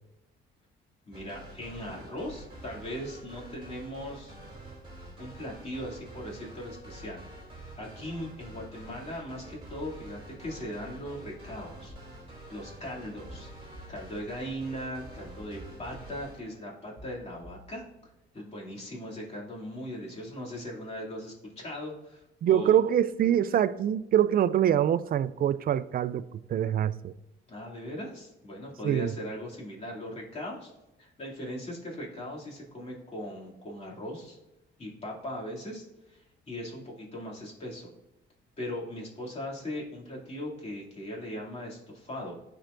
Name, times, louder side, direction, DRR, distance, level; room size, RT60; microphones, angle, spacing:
voice 1, 1.1-4.3 5.2-7.2 7.8-11.9 12.5-13.5 13.9-17.8 18.3-22.8 27.5-30.7 31.0-34.4 34.8-37.9 38.6-42.4, equal, 35° left, 2.6 m, -39 dB
sound 1, 1.1-16.4, right 1 dB, 25° right, 2.6 m, -47 dB
sound 2, 11.9-12.9 13.3-14.7 15.6-16.6 17.0-18.4 18.8-19.2, equal, 55° left, 2.1 m, -53 dB
voice 2, 22.4-27.1 28.8-29.1, right 10 dB, 50° right, 0.4 m, -25 dB
12.0 x 4.5 x 2.6 m
cardioid pair, 90°, 20 cm